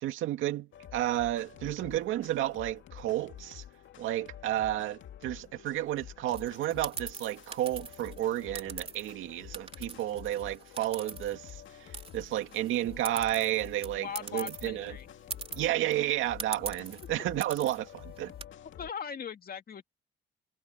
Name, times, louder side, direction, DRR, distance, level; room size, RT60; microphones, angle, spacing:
voice 1, 0.0-3.6 4.0-14.9 15.6-18.3, right 13 dB, 90° right, 2.3 m, -32 dB
sound 1, 0.7-18.9, left 10 dB, 75° left, 2.2 m, -49 dB
sound 2, 6.3-9.1 9.5-11.7 11.9-14.7 15.0-15.1 15.3-15.9 16.4-17.1 17.4-17.8 18.2-18.4, right 4 dB, 30° right, 3.5 m, -42 dB
voice 2, 14.0-15.1 18.8-19.8, left 7 dB, 50° left, 2.3 m, -39 dB
cardioid pair, 90°, 20 cm